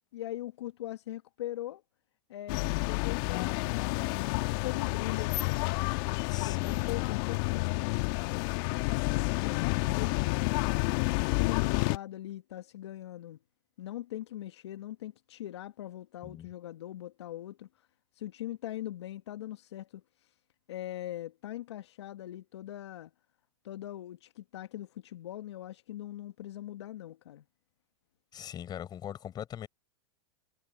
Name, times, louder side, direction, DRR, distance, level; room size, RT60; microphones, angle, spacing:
voice 1, 0.1-1.8 2.3-5.8 6.3-8.8 9.1-10.9 11.3-13.4 13.8-17.7 18.1-20.3 20.7-23.1 23.6-27.4, left 13 dB, 75° left, 1.2 m, -41 dB
sound 1, 2.5-12.0, left 25 dB, 55° left, 1.6 m, -30 dB
voice 2, 6.3-6.8 16.2-16.5 28.3-29.7, left 10 dB, 30° left, 6.4 m, -41 dB
hypercardioid pair, 110°, 14 cm